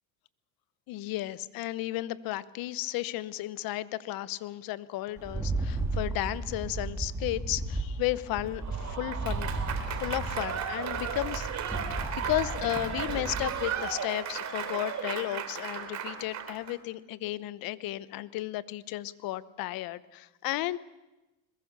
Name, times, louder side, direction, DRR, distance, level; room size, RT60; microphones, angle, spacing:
voice 1, 0.9-9.5 9.9-11.8 12.1-20.8, left 16 dB, 55° left, 17 dB, 1.0 m, -34 dB
Rattle, 5.2-13.6, right 2 dB, 5° right, 3.1 m, -35 dB
Applause / Crowd, 8.6-16.7, right 7 dB, 40° right, 3.3 m, -35 dB
22.0 x 21.0 x 6.8 m, 1.0 s
supercardioid pair, 110°, 41 cm